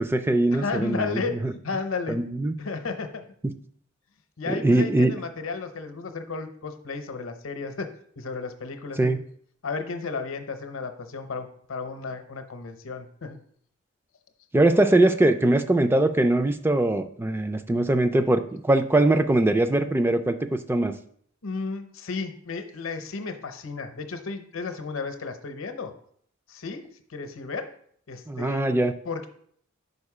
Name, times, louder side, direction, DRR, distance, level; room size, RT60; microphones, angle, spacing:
voice 1, 0.0-1.5 2.1-2.5 4.5-5.1 9.0-9.2 14.5-20.9 28.3-28.9, right 2 dB, 10° right, 9 dB, 0.3 m, -22 dB
voice 2, 0.5-1.3 1.6-2.2 2.6-3.2 4.4-7.9 8.2-9.1 9.6-13.4 21.4-25.9 26.5-27.7 28.1-28.8 29.0-29.3, left 4 dB, 70° left, 7 dB, 0.7 m, -33 dB
5.4 x 4.9 x 4.8 m, 0.62 s
head